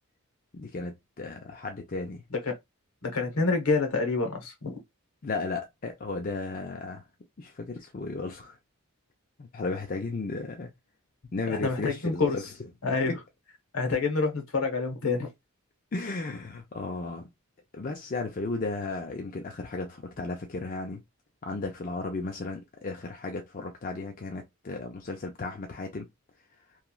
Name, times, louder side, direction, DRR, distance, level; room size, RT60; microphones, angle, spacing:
voice 1, 0.5-2.2 5.2-7.0 7.4-8.6 9.4-10.7 11.3-12.4 13.1-13.2 15.9-17.3 17.7-21.0 21.4-26.1, left 3 dB, 40° left, 0.4 m, -34 dB
voice 2, 3.0-4.8 11.6-12.4 12.8-13.1 13.7-15.3, left 4 dB, 75° left, 1.0 m, -27 dB
3.0 x 2.3 x 2.3 m
head